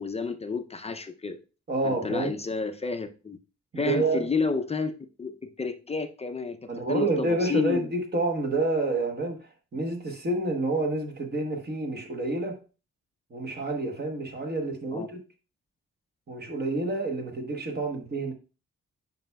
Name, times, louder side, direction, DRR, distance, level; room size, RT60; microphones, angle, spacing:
voice 1, 0.0-1.4 1.8-3.4 3.8-7.9 14.9-15.1, left 4 dB, 20° left, 0.5 m, -31 dB
voice 2, 1.7-2.3 3.7-4.3 6.7-12.6 13.3-15.2 16.3-18.3, right 2 dB, 35° right, 1.0 m, -28 dB
8.9 x 5.4 x 2.2 m
wide cardioid pair, 145°, 29 cm